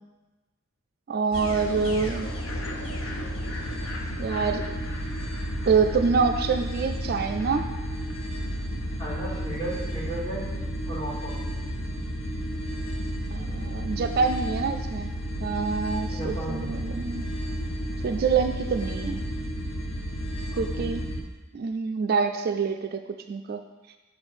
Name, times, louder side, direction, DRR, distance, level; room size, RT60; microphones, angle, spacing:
voice 1, 1.1-2.3 4.2-4.8 5.7-7.7 13.3-15.1 15.4-17.3 18.0-19.2 20.6-21.0 21.5-23.0 23.3-23.6, right 5 dB, 50° right, 7 dB, 0.3 m, -26 dB
sound 1, 1.3-21.2, equal, 85° left, 0.9 m, -32 dB
voice 2, 9.0-10.5 10.9-11.4 16.1-16.9 20.5-20.8, right 1 dB, 20° left, -7 dB, 2.3 m, -35 dB
6.2 x 5.4 x 4.8 m, 1.2 s
head